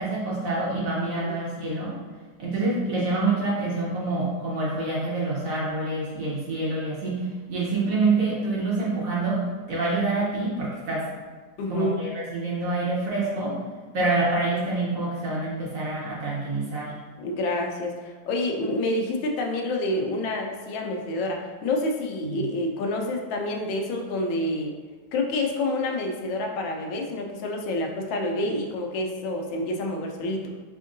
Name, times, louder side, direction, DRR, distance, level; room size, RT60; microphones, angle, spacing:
voice 1, 0.0-2.0 2.4-11.1 11.7-13.6 13.9-16.9 22.2-22.4, right 3 dB, 55° right, -6 dB, 1.1 m, -27 dB
voice 2, 11.6-12.0 17.2-24.7 25.1-30.5, left 2 dB, 85° left, 2 dB, 1.3 m, -28 dB
3.5 x 3.5 x 2.5 m, 1.4 s
omnidirectional pair, 2.0 m